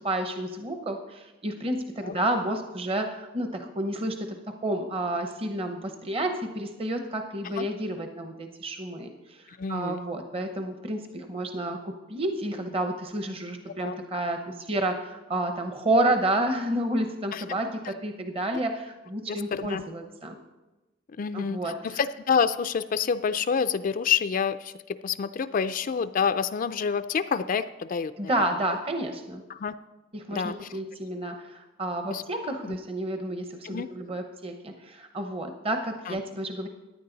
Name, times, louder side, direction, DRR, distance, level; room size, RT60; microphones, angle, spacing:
voice 1, 0.0-20.4 21.3-22.0 28.2-29.4 30.1-36.7, right 1 dB, 30° right, 5 dB, 0.9 m, -30 dB
voice 2, 9.6-10.0 13.8-14.0 17.3-17.4 19.3-19.8 21.2-28.1 29.5-29.7 30.3-30.6 32.1-32.2 32.7-32.8 33.6-33.9 36.1-36.2, left 6 dB, 45° left, 11 dB, 0.4 m, -28 dB
15.0 x 9.8 x 3.9 m, 1.1 s
head